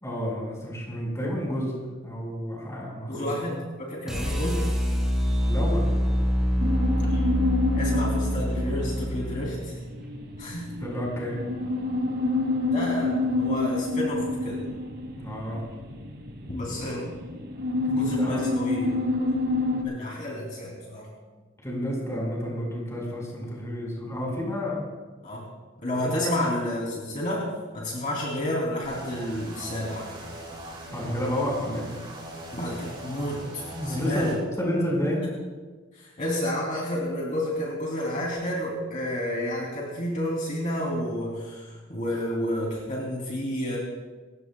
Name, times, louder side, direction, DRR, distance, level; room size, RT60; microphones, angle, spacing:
voice 1, 0.0-1.7 2.0-3.3 5.5-5.9 10.7-11.4 15.2-15.6 17.8-18.4 21.6-24.8 26.0-26.4 30.9-31.9 33.7-34.3 34.6-35.3, equal, 15° left, -2 dB, 4.7 m, -30 dB
voice 2, 3.1-4.6 7.1-7.3 7.7-9.8 10.4-10.7 12.7-14.6 16.5-17.2 17.8-19.0 19.7-21.1 25.2-25.5 25.8-27.5 27.7-30.1 32.5-34.4 35.9-43.8, left 1 dB, 40° left, -3 dB, 2.9 m, -30 dB
sound 1, 4.1-10.2, equal, 5° right, 3.3 m, -26 dB
sound 2, 6.6-19.8, left 2 dB, 55° right, 1.9 m, -28 dB
sound 3, 28.8-34.4, right 1 dB, 25° right, 4.9 m, -40 dB
28.0 x 15.5 x 2.3 m, 1.3 s
head